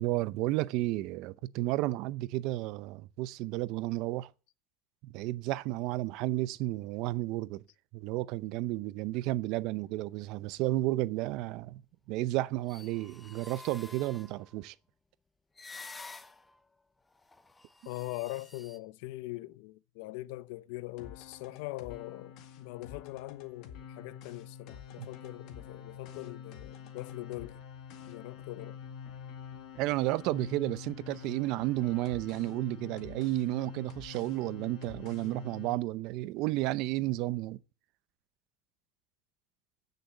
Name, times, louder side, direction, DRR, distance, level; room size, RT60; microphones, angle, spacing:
voice 1, 0.0-4.3 5.0-7.6 7.9-11.8 12.1-14.7 25.0-25.1 29.8-37.6, right 17 dB, 50° right, 0.6 m, -32 dB
sound 1, 12.5-14.6 15.6-16.6 17.1-18.8, left 3 dB, 10° left, 0.6 m, -50 dB
voice 2, 17.9-27.6 28.1-28.8, left 19 dB, 70° left, 0.6 m, -42 dB
sound 2, 21.0-35.8, left 8 dB, 50° left, 2.0 m, -47 dB
15.5 x 6.8 x 7.9 m
cardioid pair, 175°, 0 cm